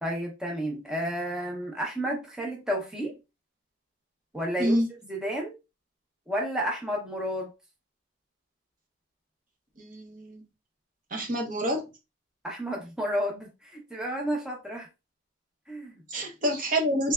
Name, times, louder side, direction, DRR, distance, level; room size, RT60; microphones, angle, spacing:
voice 1, 0.0-3.2 4.3-4.8 5.0-5.6 6.3-7.5 12.4-14.9 15.7-16.0, equal, 5° right, 0.8 m, -31 dB
voice 2, 9.8-10.4 11.1-11.9 16.1-17.1, equal, 40° right, 0.7 m, -27 dB
3.3 x 3.3 x 2.3 m
head